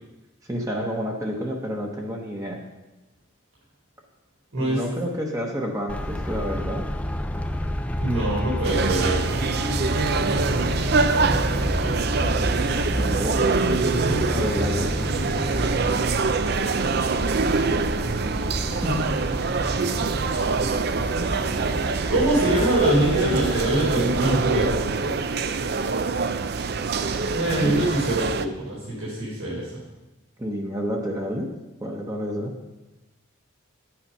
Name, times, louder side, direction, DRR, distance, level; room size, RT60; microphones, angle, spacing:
voice 1, 0.5-2.6 4.5-6.9 11.8-12.0 12.6-15.1 17.5-17.9 18.2-19.1 27.6-27.9 30.4-31.5 31.8-32.5, equal, 15° right, 0 dB, 1.0 m, -30 dB
Traffic noise roadway noise, 5.9-24.9, left 1 dB, 5° left, 0.5 m, -29 dB
voice 2, 8.0-9.2 22.1-25.2 27.3-29.7, right 1 dB, 85° right, -8 dB, 3.7 m, -24 dB
sound 1, 8.6-28.5, right 4 dB, 50° right, 0.5 m, -25 dB
10.0 x 8.8 x 5.6 m, 1.1 s
head